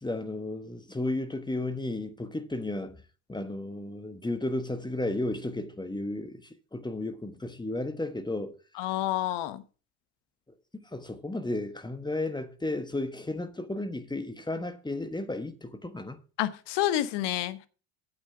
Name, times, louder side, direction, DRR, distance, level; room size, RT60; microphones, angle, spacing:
voice 1, 0.0-2.9 3.3-8.5 8.9-9.0 10.9-16.2, left 2 dB, 10° left, 1.2 m, -33 dB
voice 2, 8.8-9.6 16.4-17.7, left 13 dB, 60° left, 1.1 m, -29 dB
8.9 x 8.0 x 4.8 m
hypercardioid pair, 70°, 48 cm